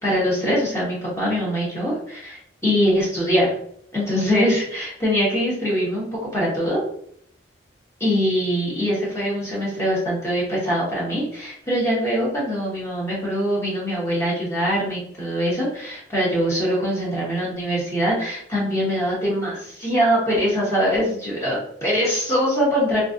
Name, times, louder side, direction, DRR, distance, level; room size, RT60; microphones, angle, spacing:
voice 1, 0.0-3.5 3.9-6.1 6.3-6.8 8.0-23.0, equal, 15° left, -6 dB, 1.1 m, -23 dB
3.2 x 2.4 x 2.5 m, 0.69 s
head